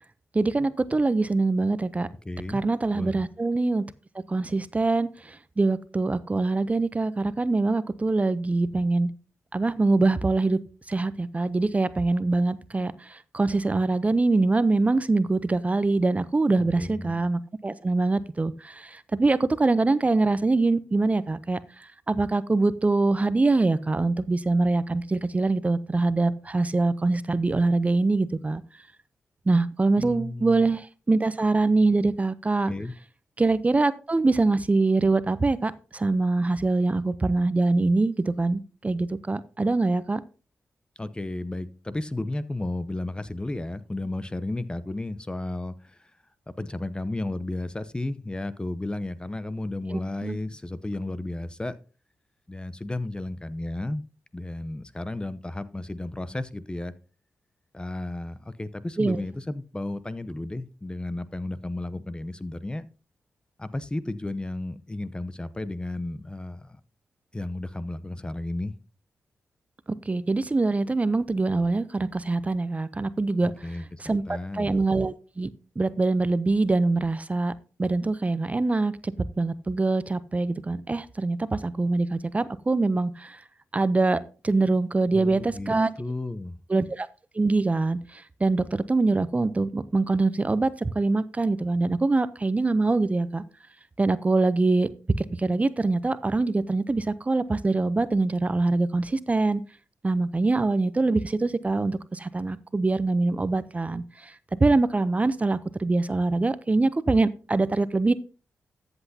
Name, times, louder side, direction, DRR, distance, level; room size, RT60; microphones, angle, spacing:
voice 1, 0.3-2.1 2.5-3.9 4.1-9.1 9.5-10.6 10.9-28.6 29.5-32.7 33.4-40.2 49.9-50.4 59.0-59.2 70.1-73.7 74.0-75.5 75.8-77.5 77.8-83.4 83.7-85.9 86.7-87.1 87.3-93.4 94.0-94.9 95.2-99.6 100.0-108.1, right 3 dB, 30° right, 15 dB, 0.6 m, -24 dB
voice 2, 2.2-2.6 2.9-3.3 16.6-17.3 30.0-30.7 32.7-32.9 41.0-46.0 46.6-51.8 52.5-54.0 54.3-56.9 57.7-62.9 63.6-66.8 67.3-68.7 73.4-74.7 85.1-86.6, left 2 dB, 20° left, 15 dB, 0.7 m, -33 dB
14.0 x 8.0 x 2.8 m, 0.36 s
cardioid pair, 55°, 5 cm